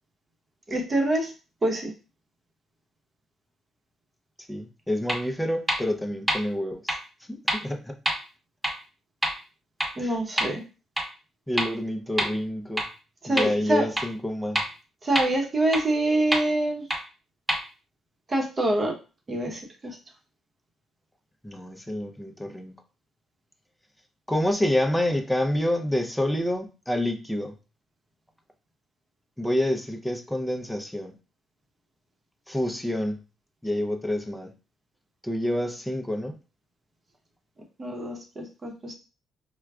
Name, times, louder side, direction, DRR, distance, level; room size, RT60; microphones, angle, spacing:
voice 1, 0.7-1.3 1.6-1.9 10.0-10.6 13.2-13.9 15.0-16.9 18.3-18.9 19.3-20.0 37.8-38.9, right 1 dB, 30° right, 2 dB, 0.9 m, -25 dB
voice 2, 4.5-7.0 7.3-7.9 10.0-10.2 11.5-12.9 13.3-14.6 21.4-22.8 24.3-27.5 29.4-31.1 32.5-33.2 33.6-34.5 35.2-36.3, left 1 dB, 5° left, 4 dB, 0.6 m, -28 dB
sound 1, 5.1-5.2 5.7-5.8 6.3-6.4 6.9-7.0 7.5-7.6 8.1-8.2 8.6-8.7 9.2-9.3 9.8-9.9 10.4-10.5 11.0-11.1 11.6-11.7 12.2-12.3 12.8-12.9 13.4-13.5 14.0-14.1 14.6-14.7 15.2-15.3 15.7-15.8 16.3-16.4 16.9-17.0 17.5-17.6, equal, 10° right, 1.0 m, -24 dB
4.7 x 2.2 x 2.3 m, 0.33 s
cardioid pair, 90°, 0 cm